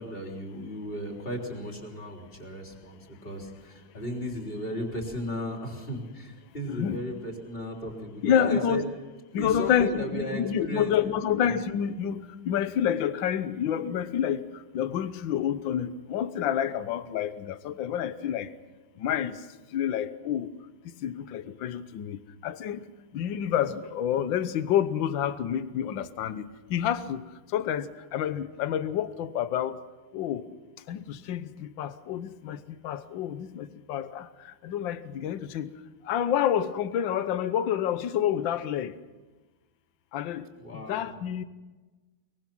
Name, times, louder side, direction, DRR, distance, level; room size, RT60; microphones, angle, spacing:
voice 1, 0.0-8.8 9.4-11.6 40.6-41.1, equal, 25° left, 3.7 m, -36 dB
voice 2, 6.7-7.0 8.2-8.8 9.3-18.5 19.0-20.5 20.9-22.9 23.1-29.8 30.1-30.5 30.9-35.7 36.0-39.0 40.1-40.5 40.7-41.4, left 9 dB, 65° left, 1.6 m, -29 dB
23.5 x 22.5 x 6.0 m
omnidirectional pair, 2.3 m